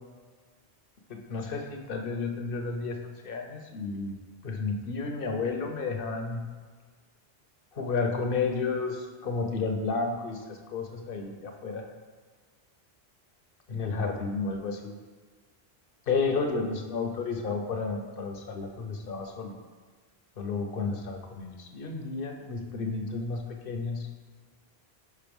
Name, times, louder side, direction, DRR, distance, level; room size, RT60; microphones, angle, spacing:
voice 1, 1.1-4.2 4.4-6.4 7.7-11.8 13.7-14.9 16.1-19.5 20.4-24.1, left 4 dB, 60° left, 4 dB, 1.0 m, -32 dB
5.4 x 4.7 x 5.3 m, 1.5 s
omnidirectional pair, 1.1 m